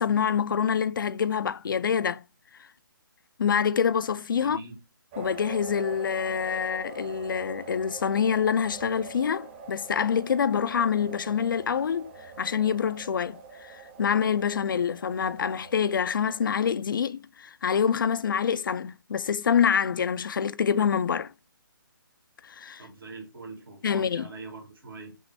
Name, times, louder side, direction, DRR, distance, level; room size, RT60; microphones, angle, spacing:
voice 1, 0.0-2.2 3.4-4.6 5.2-12.1 12.4-21.3 22.4-22.8 23.8-24.3, left 7 dB, 70° left, 0.4 m, -26 dB
voice 2, 4.4-4.7 22.8-25.2, right 3 dB, 85° right, 1.9 m, -43 dB
sound 1, 5.1-16.7, right 5 dB, 30° right, 0.9 m, -44 dB
6.1 x 2.1 x 2.6 m
figure-of-eight pair, 145°, 12 cm